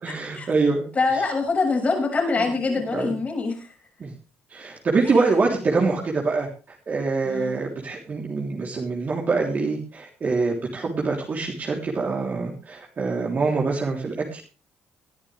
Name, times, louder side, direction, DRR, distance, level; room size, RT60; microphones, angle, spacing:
voice 1, 0.0-0.9 2.9-3.1 4.0-4.1 4.5-6.5 6.9-14.4, right 4 dB, 40° right, -2 dB, 3.5 m, -24 dB
voice 2, 0.9-3.7 5.0-5.2 7.2-7.6, left 3 dB, 35° left, 2 dB, 6.4 m, -24 dB
20.5 x 11.0 x 3.5 m, 0.35 s
cardioid pair, 95°, 4 cm